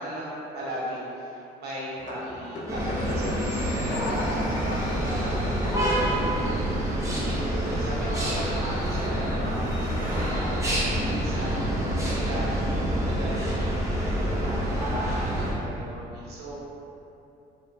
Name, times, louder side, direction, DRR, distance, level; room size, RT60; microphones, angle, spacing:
voice 1, 0.0-6.8 7.2-10.8 11.1-11.6 12.1-12.5 12.9-16.6, right 1 dB, 70° right, -7 dB, 0.8 m, -38 dB
sound 1, 2.0-10.3, left 1 dB, 50° left, 0.4 m, -39 dB
sound 2, 2.7-15.5, equal, 15° right, 0.6 m, -27 dB
2.9 x 2.1 x 2.6 m, 2.8 s
cardioid pair, 110°, 17 cm